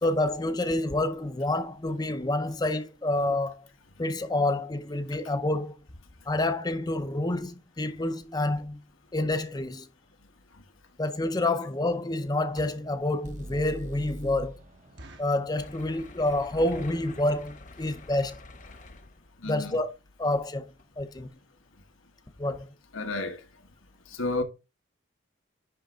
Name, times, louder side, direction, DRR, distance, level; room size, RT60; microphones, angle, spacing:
voice 1, 0.0-3.7 4.0-5.8 6.3-8.8 9.1-9.9 11.0-14.5 15.2-18.4 19.4-19.9 20.2-20.7 21.0-21.3 22.4-22.7, left 2 dB, 20° left, 0.6 m, -28 dB
sound 1, 12.5-13.0 13.5-13.6 13.9-14.0 14.4-14.5 15.0-15.5 16.1-16.4 16.6-16.7 17.0-17.2 17.8-17.9 18.1-18.3 18.6-18.7 18.9-19.0, right 1 dB, 60° right, 1.4 m, -50 dB
sound 2, 13.2-17.2, right 1 dB, 40° right, 0.9 m, -44 dB
sound 3, 15.6-19.5 20.2-20.4 20.8-20.9, left 2 dB, 40° left, 0.9 m, -47 dB
voice 2, 19.4-19.8 22.9-23.4 24.1-24.4, left 2 dB, 85° left, 1.4 m, -31 dB
10.5 x 3.5 x 5.0 m
head